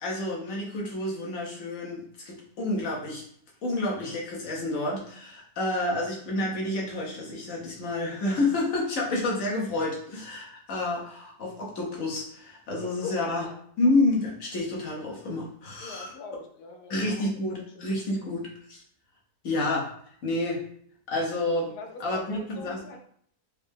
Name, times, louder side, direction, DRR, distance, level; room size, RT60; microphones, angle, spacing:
voice 1, 0.0-3.2 3.6-13.4 13.8-16.1 16.9-18.8 19.4-19.9 20.2-20.6 21.1-21.7 22.0-22.8, left 2 dB, 65° left, -2 dB, 1.2 m, -29 dB
voice 2, 12.8-13.6 15.8-17.0 18.2-18.3 21.7-23.0, left 4 dB, 90° left, 3 dB, 1.1 m, -42 dB
4.2 x 2.0 x 3.4 m, 0.63 s
omnidirectional pair, 1.6 m